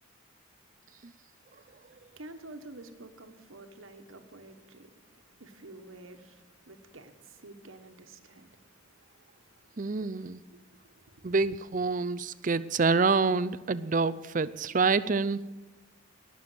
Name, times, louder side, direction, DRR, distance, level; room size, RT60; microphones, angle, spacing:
voice 1, 1.5-5.0 5.4-8.5 9.7-9.8 10.5-11.3, right 2 dB, 85° right, 7 dB, 1.4 m, -50 dB
voice 2, 9.8-10.4 11.2-15.4, right 4 dB, 40° right, 14 dB, 0.5 m, -27 dB
19.0 x 6.9 x 7.9 m, 1.1 s
head